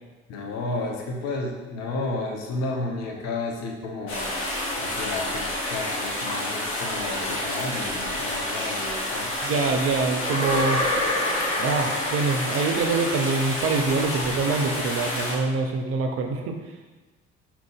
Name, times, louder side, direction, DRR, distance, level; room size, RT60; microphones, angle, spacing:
voice 1, 0.3-4.3 4.8-9.3, left 2 dB, 55° left, 0 dB, 0.9 m, -32 dB
sound 1, 4.1-15.3, left 1 dB, 75° left, 1.1 m, -29 dB
voice 2, 9.4-10.8 11.6-16.6, right 4 dB, 45° right, 4 dB, 0.6 m, -25 dB
sound 2, 10.2-13.3, left 1 dB, 20° left, 1.0 m, -28 dB
5.2 x 2.9 x 3.5 m, 1.2 s
figure-of-eight pair, 50°, 33 cm